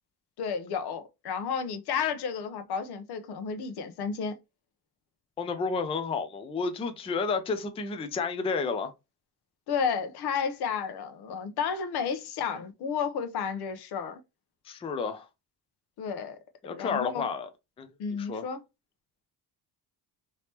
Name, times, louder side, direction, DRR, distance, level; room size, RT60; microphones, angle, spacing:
voice 1, 0.4-4.4 9.7-14.2 16.0-16.4 16.8-17.3 18.0-18.6, left 6 dB, 80° left, 0.8 m, -32 dB
voice 2, 5.4-8.9 14.6-15.3 16.6-17.5 17.8-18.5, left 4 dB, 15° left, 0.3 m, -31 dB
3.3 x 2.9 x 2.8 m
cardioid pair, 160°, 38 cm